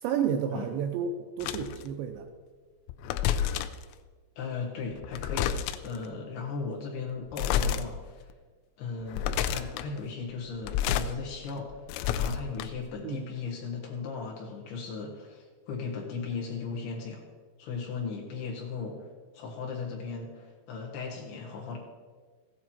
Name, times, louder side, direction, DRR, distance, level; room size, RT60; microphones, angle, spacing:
voice 1, 0.0-1.1 1.4-2.3 13.0-13.2, right 8 dB, 85° right, 5 dB, 2.6 m, -30 dB
sound 1, 1.4-1.8 2.9-3.8 4.9-6.0 7.3-7.8 8.3-8.4 9.0-9.9 10.5-11.1 11.5-12.9, left 9 dB, 85° left, 3.1 m, -29 dB
voice 2, 4.4-8.3 8.8-11.7 12.2-17.2 17.6-19.1 19.3-21.8, left 5 dB, 70° left, 0 dB, 2.9 m, -37 dB
15.5 x 9.1 x 4.3 m, 1.5 s
omnidirectional pair, 5.7 m